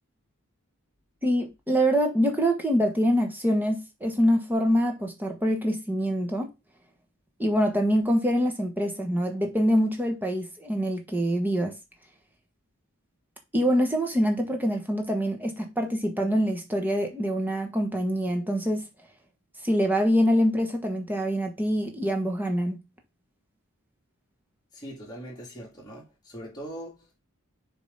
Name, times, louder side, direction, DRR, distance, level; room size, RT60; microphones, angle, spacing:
voice 1, 1.2-6.5 7.4-11.7 13.5-18.8 19.6-22.8, equal, 10° right, 1.3 m, -25 dB
voice 2, 24.7-27.2, right 1 dB, 20° left, 3.0 m, -41 dB
7.0 x 3.7 x 5.6 m
head